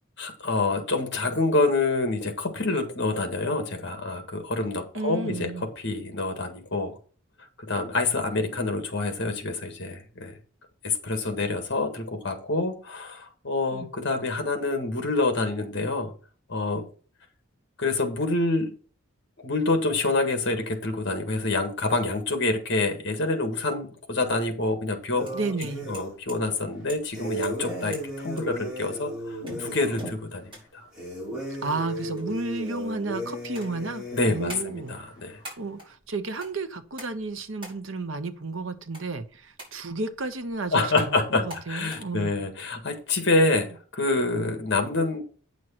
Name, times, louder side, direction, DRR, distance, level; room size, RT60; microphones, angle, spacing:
voice 1, 0.2-7.0 7.6-10.3 10.8-16.1 16.5-16.9 17.8-18.7 19.4-25.3 25.9-30.9 34.1-35.4 40.7-45.2, left 2 dB, 55° left, 1.6 m, -27 dB
voice 2, 4.9-5.7 13.7-13.9 25.3-25.9 31.6-35.0 35.6-42.4, right 3 dB, 60° right, 0.9 m, -32 dB
sound 1, 25.1-26.2 27.1-30.1 30.9-34.6, equal, 5° right, 4.6 m, -35 dB
sound 2, 25.2-42.0, equal, 25° right, 5.2 m, -48 dB
9.1 x 6.3 x 4.4 m
head